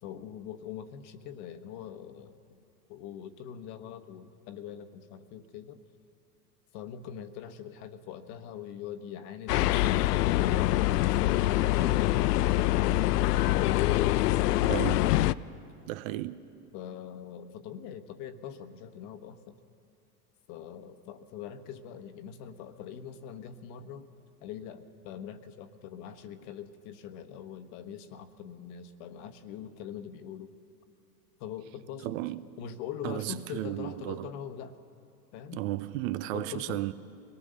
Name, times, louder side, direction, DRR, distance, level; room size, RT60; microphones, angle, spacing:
voice 1, 0.0-2.4 2.9-5.8 6.7-11.7 12.0-14.9 16.7-19.6 20.5-24.1 24.4-30.5 31.4-32.2 32.6-34.8 35.3-35.6 36.3-36.8, left 8 dB, 50° left, 1.3 m, -43 dB
sound 1, 9.5-15.3, left 15 dB, 75° left, 0.6 m, -25 dB
voice 2, 14.6-15.0 15.9-16.4 32.0-32.5 33.0-34.3 35.5-36.9, right 15 dB, 55° right, 0.9 m, -34 dB
23.5 x 18.5 x 6.7 m
hypercardioid pair, 95°, 47 cm